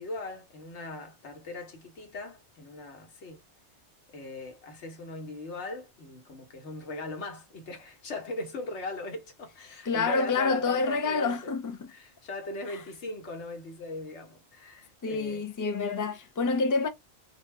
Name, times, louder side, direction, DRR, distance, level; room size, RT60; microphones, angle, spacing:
voice 1, 0.0-3.4 4.1-11.5 11.9-15.5, left 2 dB, 85° left, 1.3 m, -39 dB
voice 2, 9.9-11.9 15.0-16.9, left 4 dB, 30° left, 0.4 m, -27 dB
2.6 x 2.3 x 3.2 m
omnidirectional pair, 1.1 m